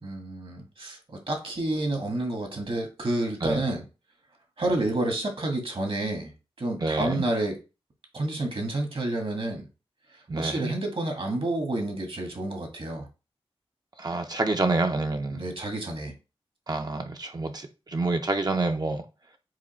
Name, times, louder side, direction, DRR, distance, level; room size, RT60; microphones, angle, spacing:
voice 1, 0.0-3.8 4.6-6.3 6.6-7.5 8.1-9.7 10.4-13.1 15.3-16.1, right 2 dB, 60° right, 1.5 m, -29 dB
voice 2, 6.8-7.2 10.3-10.7 14.0-15.4 16.7-19.0, right 2 dB, 40° right, 0.6 m, -27 dB
4.8 x 2.3 x 4.3 m
wide cardioid pair, 60°, 10 cm